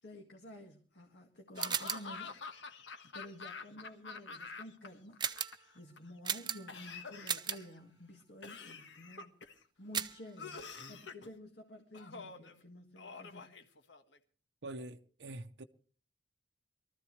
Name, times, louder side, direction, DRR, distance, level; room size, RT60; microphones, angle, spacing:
voice 1, 0.0-2.3 3.0-9.4 9.8-13.5, left 1 dB, 65° left, 1.8 m, -52 dB
Laughter / Cough, 1.6-4.9 5.1-6.0 6.7-7.8 8.4-9.6 10.4-11.3 11.9-12.5 13.0-14.2, left 4 dB, 80° left, 1.4 m, -47 dB
sound 1, 1.6-2.2 5.2-5.6 6.2-6.8 7.3-7.7 9.9-10.3, right 8 dB, 25° right, 0.6 m, -36 dB
voice 2, 14.6-15.6, right 2 dB, 65° right, 0.7 m, -45 dB
23.0 x 14.0 x 3.1 m
head